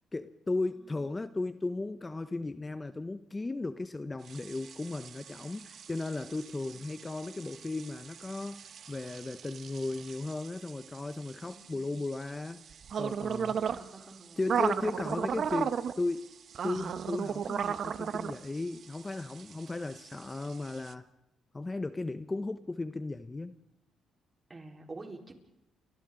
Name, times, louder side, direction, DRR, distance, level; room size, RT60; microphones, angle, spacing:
voice 1, 0.1-12.6 13.0-13.8 14.4-16.3 16.6-21.0 21.5-23.6, left 2 dB, 20° left, 11 dB, 0.8 m, -36 dB
sound 1, 4.3-20.9, right 7 dB, 55° right, 0.9 m, -37 dB
voice 2, 11.4-11.9 13.5-14.4 14.7-14.9 24.5-25.3, right 3 dB, 25° right, 2 dB, 4.1 m, -48 dB
30.0 x 25.5 x 3.9 m, 0.90 s
cardioid pair, 90°, 0 cm